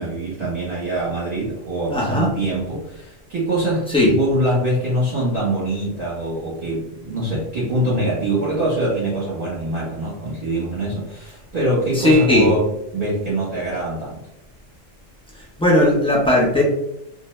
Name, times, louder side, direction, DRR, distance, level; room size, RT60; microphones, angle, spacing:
voice 1, 0.0-14.2, right 1 dB, 45° right, -9 dB, 1.1 m, -24 dB
voice 2, 1.9-2.3 3.9-4.1 12.0-12.5 15.6-16.6, left 1 dB, 10° left, -4 dB, 0.4 m, -16 dB
2.6 x 2.2 x 3.0 m, 0.86 s
omnidirectional pair, 1.3 m